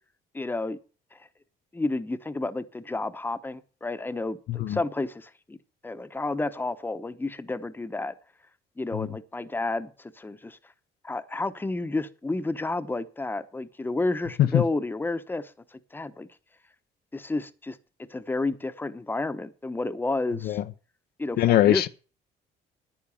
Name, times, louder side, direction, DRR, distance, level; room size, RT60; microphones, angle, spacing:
voice 1, 0.3-0.8 1.1-1.2 1.7-5.6 5.8-8.1 8.8-10.6 11.0-16.3 17.1-17.8 18.1-20.6 21.2-21.9, left 2 dB, 10° left, 1.0 m, -31 dB
voice 2, 21.4-21.9, left 12 dB, 65° left, 0.8 m, -21 dB
10.0 x 9.9 x 7.1 m
cardioid pair, 110°, 17 cm